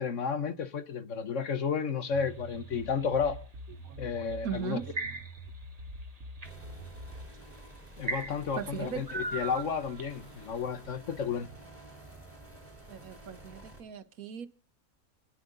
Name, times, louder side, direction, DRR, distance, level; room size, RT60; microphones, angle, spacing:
voice 1, 0.0-3.4 4.0-4.8 8.0-11.5, left 6 dB, 60° left, 1.4 m, -32 dB
sound 1, 2.1-3.3 4.3-5.6 6.0-6.5 7.2-7.4 8.0-10.2, right 3 dB, 25° right, 1.4 m, -38 dB
sound 2, 2.1-7.3, right 1 dB, 60° right, 1.8 m, -45 dB
voice 2, 4.4-5.2 8.6-9.3 12.9-14.5, right 7 dB, 80° right, 1.5 m, -39 dB
sound 3, 6.4-13.8, right 1 dB, 10° right, 4.4 m, -50 dB
29.0 x 9.9 x 3.9 m
omnidirectional pair, 1.5 m